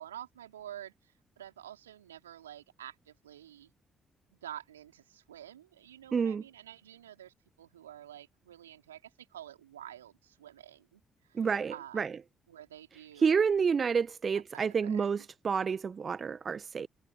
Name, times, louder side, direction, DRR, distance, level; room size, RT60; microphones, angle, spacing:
voice 1, 0.0-3.7 4.3-11.0 11.3-12.1 12.5-13.5 14.3-15.2, right 11 dB, 85° right, 3.4 m, -49 dB
voice 2, 6.1-6.4 11.4-12.1 13.2-16.9, right 6 dB, 45° right, 0.8 m, -29 dB
figure-of-eight pair, 40°, 0 cm